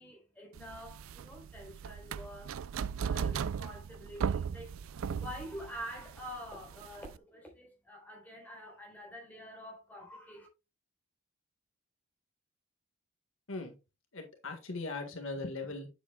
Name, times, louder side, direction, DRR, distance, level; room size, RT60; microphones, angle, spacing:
voice 1, 0.0-10.5, equal, 5° left, 3.8 m, -47 dB
sound 1, 0.6-7.2, right 7 dB, 70° right, 0.4 m, -37 dB
voice 2, 14.1-15.9, left 3 dB, 65° left, 1.7 m, -39 dB
9.1 x 8.0 x 2.3 m
head